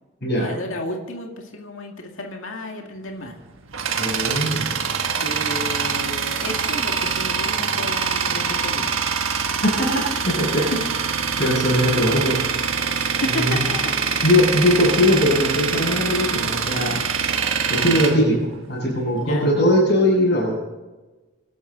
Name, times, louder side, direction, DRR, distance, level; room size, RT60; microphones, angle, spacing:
voice 1, 0.4-3.4 5.2-9.0 10.6-10.8 12.9-13.9 19.2-19.5, left 1 dB, 75° left, 2 dB, 2.2 m, -32 dB
Tools, 3.3-19.1, right 6 dB, 80° right, 1.4 m, -24 dB
voice 2, 4.0-4.7 9.6-10.6 11.4-12.4 13.3-13.7 14.2-17.0 17.7-20.5, left 1 dB, 55° left, -8 dB, 6.1 m, -20 dB
26.0 x 12.0 x 4.0 m, 1.2 s
head